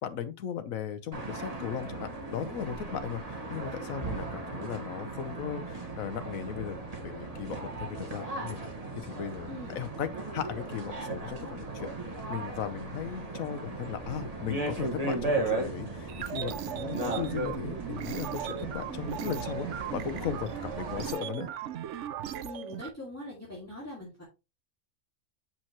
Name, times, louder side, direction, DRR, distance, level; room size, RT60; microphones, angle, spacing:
voice 1, 0.0-8.6 9.0-11.9 12.3-21.5, left 8 dB, 80° left, 1.3 m, -37 dB
sound 1, 1.1-21.1, right 2 dB, 30° right, 1.6 m, -36 dB
voice 2, 9.5-9.8 22.4-24.2, left 2 dB, 10° left, 2.3 m, -42 dB
sound 2, 16.1-22.9, right 10 dB, 65° right, 0.9 m, -37 dB
7.5 x 5.8 x 3.0 m
omnidirectional pair, 1.4 m